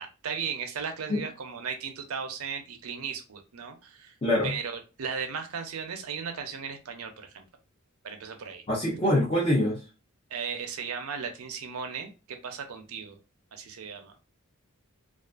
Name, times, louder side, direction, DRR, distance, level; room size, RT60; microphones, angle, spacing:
voice 1, 0.0-4.1 4.4-7.4 8.0-8.6 10.3-12.1 12.4-13.2 13.5-14.1, right 6 dB, 85° right, 6 dB, 0.6 m, -36 dB
voice 2, 4.2-4.5 8.7-9.8, left 1 dB, 25° left, -6 dB, 0.6 m, -24 dB
2.4 x 2.4 x 2.3 m, 0.31 s
head